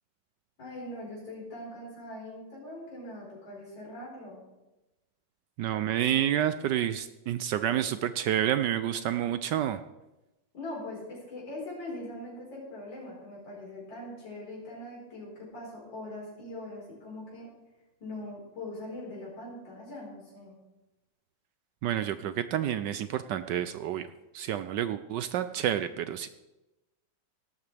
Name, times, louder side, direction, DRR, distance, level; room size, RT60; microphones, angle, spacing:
voice 1, 0.6-4.4 10.5-17.5 18.0-20.5, left 1 dB, 65° left, -5 dB, 5.3 m, -41 dB
voice 2, 5.6-9.8 21.8-24.1 24.3-26.3, right 11 dB, 75° right, 11 dB, 1.1 m, -29 dB
17.0 x 12.5 x 3.4 m, 1.0 s
omnidirectional pair, 2.2 m